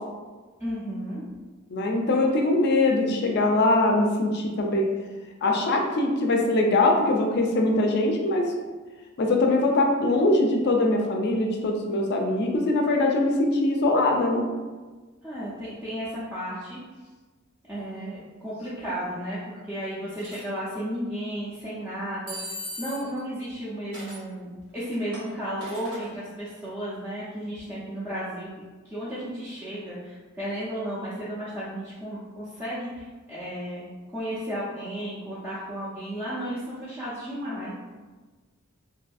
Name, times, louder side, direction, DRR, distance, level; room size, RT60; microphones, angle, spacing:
voice 1, 0.6-1.2 15.2-16.8 17.7-37.7, equal, 10° right, -11 dB, 0.4 m, -34 dB
voice 2, 1.7-4.9 5.4-8.5 9.2-14.4, left 2 dB, 50° left, 2 dB, 0.4 m, -22 dB
sound 1, 20.2-20.4 22.3-23.2 23.9-24.2 24.8-26.1, equal, 75° right, 1.2 m, -38 dB
2.6 x 2.5 x 2.3 m, 1.3 s
head